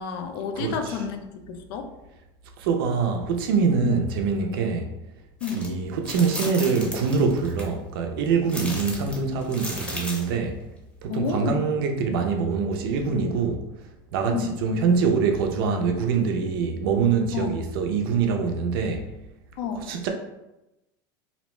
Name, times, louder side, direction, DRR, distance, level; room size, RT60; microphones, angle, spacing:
voice 1, 0.0-1.9 3.8-4.0 5.4-5.7 11.1-11.6 14.3-14.6 17.3-17.5 19.6-19.9, left 5 dB, 75° left, 0.4 m, -30 dB
voice 2, 0.5-1.0 2.6-4.9 5.5-10.6 11.0-19.0 19.7-20.1, right 5 dB, 85° right, 0.5 m, -24 dB
sound 1, 5.4-5.7 6.0-7.6 8.5-10.3, left 1 dB, 10° left, 0.7 m, -35 dB
2.7 x 2.1 x 3.0 m
supercardioid pair, 120°, 12 cm